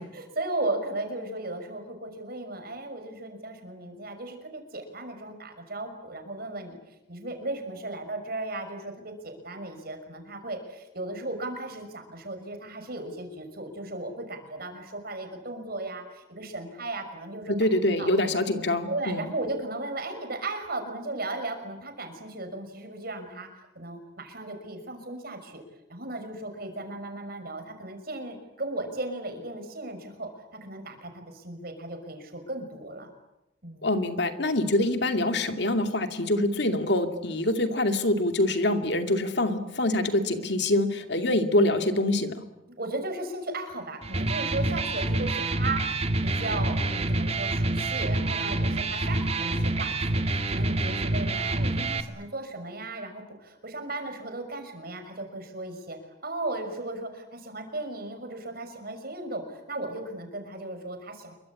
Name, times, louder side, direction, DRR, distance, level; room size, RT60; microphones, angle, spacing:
voice 1, 0.0-6.8 7.1-17.5 18.0-18.1 18.9-23.5 23.7-25.6 25.9-33.1 33.6-33.9 42.8-61.3, right 2 dB, 55° right, 5 dB, 6.0 m, -36 dB
voice 2, 17.5-19.2 33.8-42.4, left 1 dB, 65° left, 7 dB, 2.5 m, -25 dB
Electric guitar, 44.0-52.0, right 2 dB, 35° right, 2.0 m, -27 dB
27.5 x 24.0 x 8.6 m, 0.94 s
head